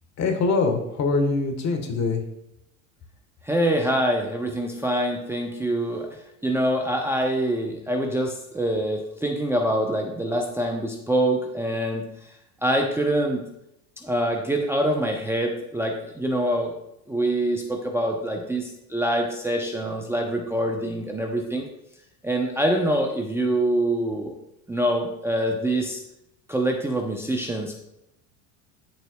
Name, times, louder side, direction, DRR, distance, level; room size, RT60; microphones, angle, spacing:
voice 1, 0.2-2.2, left 3 dB, 40° left, 5 dB, 1.3 m, -23 dB
voice 2, 3.4-6.1 6.4-12.0 12.6-13.4 14.0-16.7 17.1-21.7 22.2-24.3 24.7-26.0 26.5-27.7, right 1 dB, 5° right, 0 dB, 0.7 m, -25 dB
12.0 x 4.0 x 2.3 m, 0.82 s
hypercardioid pair, 85°, 43 cm